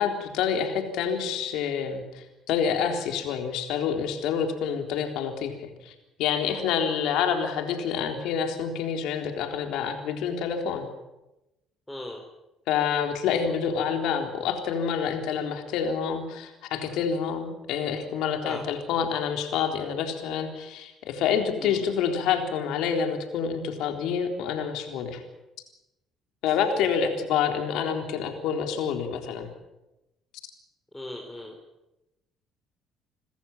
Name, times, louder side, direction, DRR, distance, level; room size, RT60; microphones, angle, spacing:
voice 1, 0.0-10.9 12.7-25.2 26.4-29.5, left 7 dB, 80° left, 5 dB, 3.8 m, -28 dB
voice 2, 11.9-12.2 18.4-18.6 21.6-21.8 26.5-26.9 30.9-31.6, left 1 dB, 10° left, 0 dB, 4.5 m, -38 dB
27.5 x 14.5 x 9.0 m, 0.97 s
supercardioid pair, 75°, 0 cm